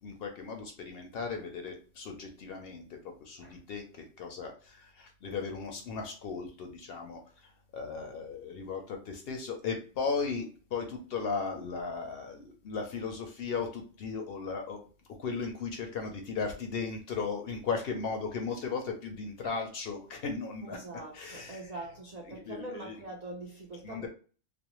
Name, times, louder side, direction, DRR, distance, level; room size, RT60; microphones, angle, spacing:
voice 1, 0.0-2.8 3.2-14.8 15.2-20.8 21.1-21.6 22.3-22.9 23.8-24.1, left 5 dB, 65° left, 0.6 m, -36 dB
voice 2, 20.7-24.1, right 2 dB, 70° right, 0.3 m, -43 dB
2.5 x 2.1 x 2.9 m
omnidirectional pair, 1.3 m